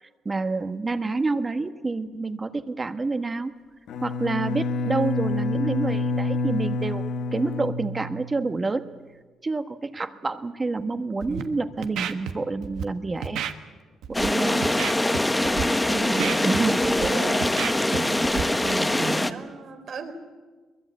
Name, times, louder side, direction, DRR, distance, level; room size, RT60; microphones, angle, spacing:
voice 1, 0.2-3.5 4.0-7.0 7.3-8.9 9.4-13.4 14.1-14.7 16.4-16.8, right 3 dB, 25° right, 9 dB, 1.3 m, -28 dB
Bowed string instrument, 3.9-8.6, left 3 dB, 75° left, 1.3 m, -28 dB
Scratching (performance technique), 11.2-11.4 11.8-12.3 12.6-12.8 13.2-13.5 14.0-14.3 14.6-15.2 15.4-15.6 16.0-17.1 17.4-18.0 18.2-18.4, right 9 dB, 85° right, 1.4 m, -30 dB
sound 1, 14.1-19.3, left 1 dB, 10° left, 1.1 m, -23 dB
voice 2, 15.9-16.5 16.8-17.5 17.9-18.2 18.6-20.1, right 5 dB, 60° right, 4 dB, 3.9 m, -34 dB
22.5 x 21.0 x 8.4 m, 1.4 s
cardioid pair, 90°, 0 cm